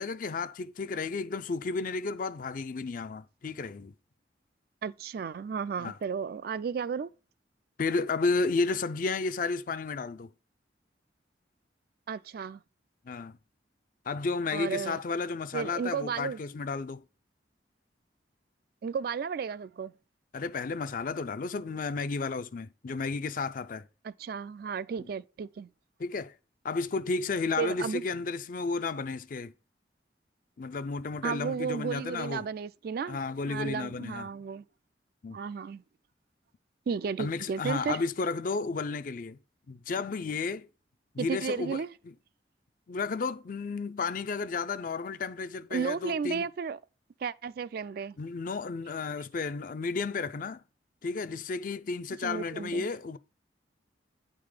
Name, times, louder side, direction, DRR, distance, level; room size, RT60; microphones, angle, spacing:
voice 1, 0.0-3.9 5.8-6.0 7.8-10.3 13.1-13.4 14.1-17.0 20.3-23.8 26.0-26.3 26.6-29.5 30.6-32.5 33.1-34.3 35.2-35.4 37.2-39.4 39.7-40.7 41.1-41.8 42.9-46.5 48.2-50.6 51.0-53.2, left 4 dB, 45° left, 0.4 m, -32 dB
voice 2, 4.8-7.1 12.1-12.6 14.5-15.0 15.5-16.4 18.8-19.9 24.0-25.7 27.6-28.0 31.2-33.2 33.5-34.6 35.3-35.8 36.9-38.0 41.2-41.9 45.7-46.8 47.2-48.2 52.2-52.9, right 6 dB, 55° right, 0.3 m, -33 dB
9.4 x 3.8 x 4.9 m
head